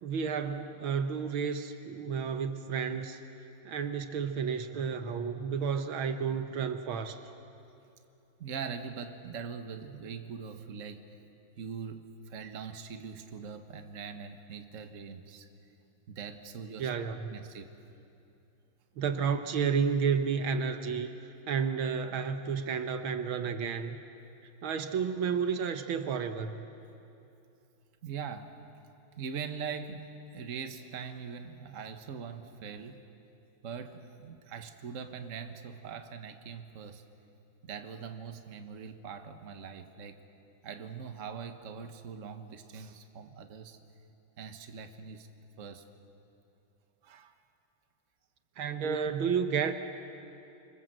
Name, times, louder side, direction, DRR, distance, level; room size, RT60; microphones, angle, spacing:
voice 1, 0.0-3.2 3.7-7.2 16.8-17.3 19.0-21.1 21.5-24.0 24.6-26.7 48.6-49.7, right 6 dB, 75° right, 8 dB, 1.8 m, -31 dB
voice 2, 8.4-11.2 11.6-15.5 16.1-16.9 17.3-17.7 28.0-28.5 29.2-33.0 33.6-37.0 37.6-40.2 40.6-43.8 44.4-45.3 45.6-45.9 47.0-47.4 48.8-49.0, right 6 dB, 40° right, 7 dB, 1.5 m, -42 dB
27.0 x 25.5 x 7.7 m, 2.8 s
omnidirectional pair, 2.3 m